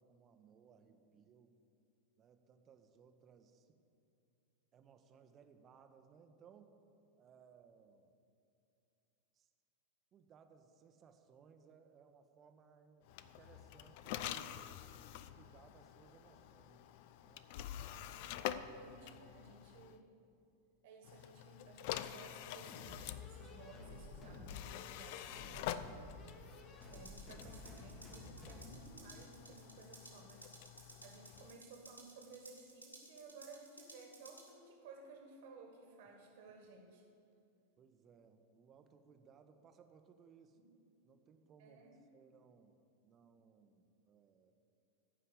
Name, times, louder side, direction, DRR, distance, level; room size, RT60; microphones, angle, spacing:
voice 1, 0.0-1.6 2.2-3.7 4.7-6.8 7.2-8.1 9.3-9.5 10.1-14.8 15.1-16.9 17.2-17.6 31.4-31.5 37.8-40.6 41.0-41.8 42.1-42.8 43.0-44.5, right 6 dB, 30° right, 7 dB, 1.0 m, -64 dB
sound 1, 13.1-20.0 21.0-31.6, left 11 dB, 50° left, 0.4 m, -47 dB
voice 2, 18.1-20.1 20.8-26.0 26.9-30.4 31.0-37.0 40.6-40.7 41.6-42.0, right 3 dB, 55° right, 2 dB, 1.8 m, -57 dB
sound 2, 22.7-28.9, left 2 dB, 30° left, 1.7 m, -53 dB
sound 3, 26.8-34.5, right 2 dB, 90° right, 2.2 m, -58 dB
14.5 x 5.6 x 8.2 m, 2.6 s
figure-of-eight pair, 90°, 0 cm